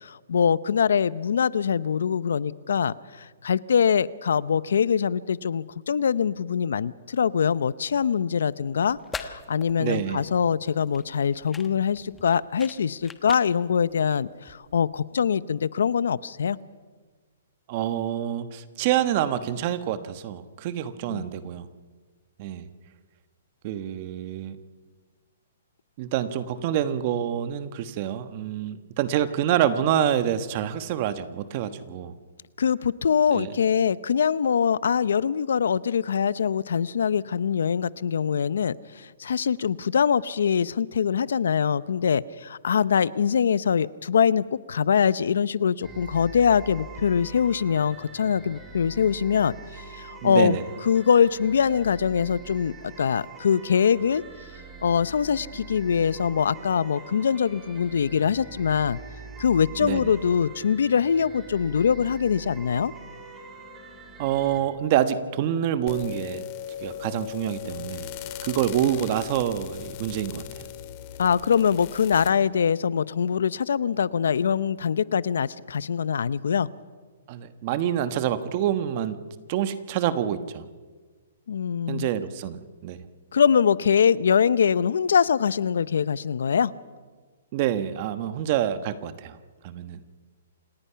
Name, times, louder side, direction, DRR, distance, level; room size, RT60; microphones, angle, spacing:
voice 1, 0.0-16.6 21.1-21.2 32.6-50.6 50.8-54.2 54.8-59.0 59.4-62.9 71.2-76.7 81.5-82.1 83.3-86.7, left 7 dB, 80° left, 19 dB, 0.7 m, -23 dB
sound 1, 8.8-14.9, left 4 dB, 10° left, 1.1 m, -43 dB
voice 2, 9.8-10.2 17.7-21.7 22.4-22.6 23.6-24.6 26.0-32.1 33.3-33.5 50.2-50.6 59.8-60.1 64.2-66.4 66.8-68.1 68.4-70.7 77.3-80.7 81.9-83.0 87.5-89.4 89.6-90.0, right 10 dB, 35° right, 12 dB, 1.2 m, -27 dB
sound 2, 45.8-64.6, right 4 dB, 15° right, 2.7 m, -44 dB
sound 3, 65.9-72.3, left 11 dB, 35° left, 1.9 m, -38 dB
27.5 x 18.5 x 5.8 m, 1.5 s
hypercardioid pair, 160°, 0 cm